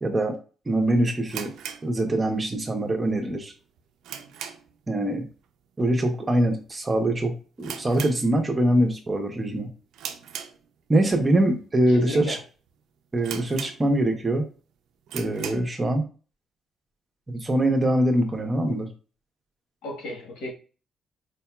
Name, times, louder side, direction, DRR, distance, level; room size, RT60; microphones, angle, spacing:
voice 1, 0.0-0.3 0.7-1.5 1.8-3.5 4.9-5.3 5.8-9.7 10.9-12.4 13.1-14.4 15.1-16.1 17.3-18.9, right 1 dB, 25° right, 1.0 m, -23 dB
sound 1, 1.3-2.6 2.9-3.0 3.5-4.9 5.2-5.5 5.7-5.8 6.5-6.8 7.1-7.2 7.6-8.8 9.1-9.4 9.9-11.1 11.6-11.7 12.3-12.4 12.7-12.8 13.2-14.2 14.6-14.7 15.0-15.8, right 8 dB, 80° right, 0.5 m, -38 dB
voice 2, 11.9-12.4 19.8-20.5, left 1 dB, 85° left, 1.4 m, -35 dB
4.6 x 2.7 x 2.3 m
cardioid pair, 90°, 0 cm